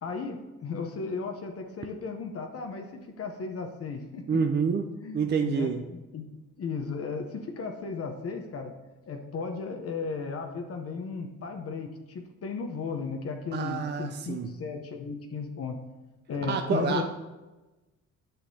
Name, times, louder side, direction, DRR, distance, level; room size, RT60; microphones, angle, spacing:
voice 1, 0.0-4.2 5.0-8.7 9.1-15.8 16.3-17.0, left 4 dB, 50° left, 4 dB, 0.8 m, -35 dB
voice 2, 4.3-4.9 5.1-5.8 13.5-14.5 16.5-17.0, right 6 dB, 35° right, 5 dB, 0.5 m, -28 dB
10.0 x 5.9 x 2.8 m, 1.1 s
cardioid pair, 90°, 30 cm